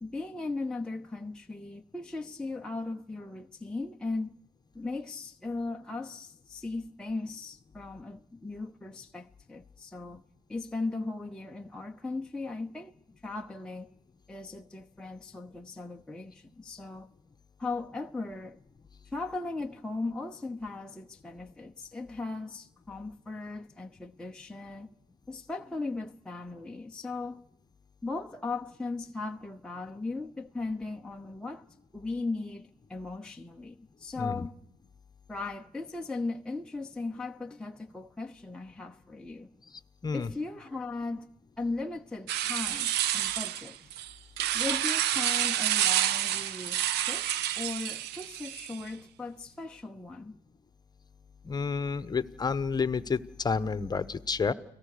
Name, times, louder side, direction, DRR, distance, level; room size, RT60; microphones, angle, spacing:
voice 1, 0.0-4.3 4.7-10.2 10.5-12.9 13.2-13.9 14.3-17.1 17.6-18.6 19.1-24.9 25.3-27.4 28.0-31.6 31.9-34.5 35.3-39.5 40.1-41.3 41.6-43.8 44.5-47.3 47.6-50.4, left 3 dB, 5° left, 0.8 m, -37 dB
voice 2, 34.2-34.5 39.7-40.3 51.4-54.5, left 5 dB, 25° left, 1.1 m, -30 dB
sound 1, 42.3-48.9, right 12 dB, 80° right, 0.7 m, -29 dB
30.0 x 18.5 x 6.6 m
cardioid pair, 110°, 17 cm